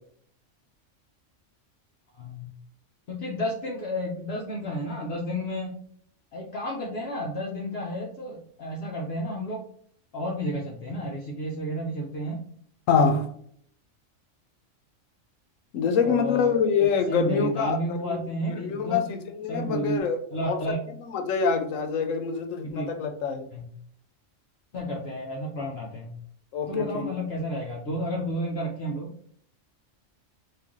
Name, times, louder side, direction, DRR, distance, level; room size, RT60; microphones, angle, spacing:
voice 1, 2.2-2.5 3.1-5.8 6.3-9.6 10.1-12.4 16.0-16.6 17.1-19.1 19.5-20.0 20.3-20.8 22.6-22.9 23.5-23.7 24.7-26.1 26.7-29.1, equal, 60° left, 0.9 m, -31 dB
voice 2, 12.9-13.3 15.7-18.2 18.6-20.6 21.1-23.4 26.5-27.0, left 5 dB, 90° left, 1.0 m, -25 dB
3.3 x 2.5 x 3.6 m
omnidirectional pair, 1.3 m